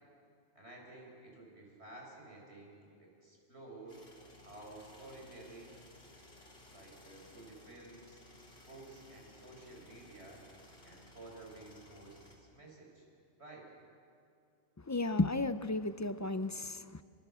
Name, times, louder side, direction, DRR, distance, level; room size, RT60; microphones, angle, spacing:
voice 1, 0.5-4.0 4.4-5.8 6.7-8.2 8.6-10.4 10.8-13.0 13.4-13.7, right 2 dB, 70° right, -1 dB, 6.0 m, -52 dB
sound 1, 3.9-12.4, left 1 dB, 65° left, 3.6 m, -58 dB
voice 2, 14.8-17.0, left 2 dB, 25° left, 12 dB, 0.4 m, -33 dB
25.5 x 22.0 x 6.9 m, 2.3 s
omnidirectional pair, 1.2 m